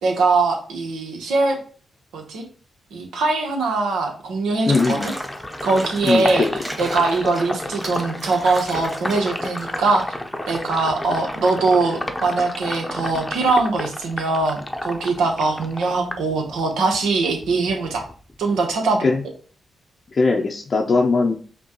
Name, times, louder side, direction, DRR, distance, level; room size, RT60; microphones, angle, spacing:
voice 1, 0.0-1.6 2.1-2.4 2.9-5.0 5.6-6.5 6.8-10.1 10.5-18.0 18.4-19.1, right 3 dB, 80° right, 2 dB, 0.9 m, -21 dB
Water / Bathtub (filling or washing), 4.5-10.0, right 1 dB, 10° right, 1.4 m, -36 dB
voice 2, 4.7-5.1 6.0-6.5 19.0-19.2 20.1-21.3, left 3 dB, 50° left, 2 dB, 0.5 m, -20 dB
Sink (filling or washing), 4.7-17.0 17.3-18.7, left 1 dB, 15° left, 0.7 m, -31 dB
5.3 x 2.2 x 2.9 m, 0.43 s
supercardioid pair, 45°, 0 cm